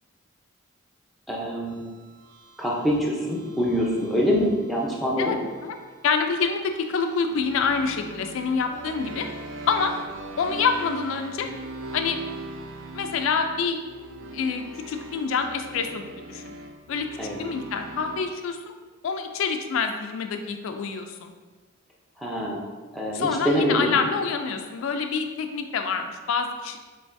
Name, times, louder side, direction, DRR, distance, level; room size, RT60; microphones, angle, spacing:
voice 1, 1.3-1.8 2.6-5.4 17.2-17.4 22.2-22.6 22.9-24.0, equal, ahead, -4 dB, 0.5 m, -25 dB
sound 1, 1.7-18.2, right 1 dB, 70° right, 0.4 m, -40 dB
voice 2, 6.0-9.3 9.7-9.9 10.4-11.5 11.9-12.2 12.9-13.8 14.3-16.5 16.9-17.1 17.4-18.7 19.0-21.3 23.1-26.8, left 5 dB, 80° left, 6 dB, 0.3 m, -26 dB
4.6 x 3.2 x 2.6 m, 1.4 s
head